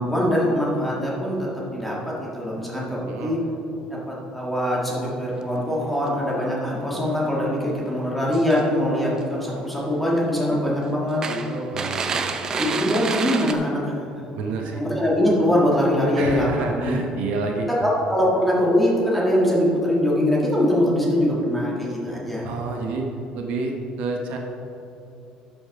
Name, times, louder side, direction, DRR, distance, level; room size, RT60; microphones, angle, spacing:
voice 1, 0.0-3.4 3.9-11.7 12.5-13.8 14.7-17.0 17.8-22.5, equal, ahead, -5 dB, 1.7 m, -22 dB
sound 1, 5.4-5.5 5.8-6.1 6.8-6.9 7.4-7.5 8.2-8.8 9.2-9.7 10.0-10.1 10.5-10.7 11.2-13.5, right 5 dB, 25° right, 0.5 m, -28 dB
voice 2, 11.7-12.5 14.3-14.8 16.2-17.7 22.4-23.1 23.3-24.4, right 3 dB, 60° right, 1 dB, 1.0 m, -29 dB
12.0 x 5.5 x 4.8 m, 3.0 s
cardioid pair, 170°, 2 cm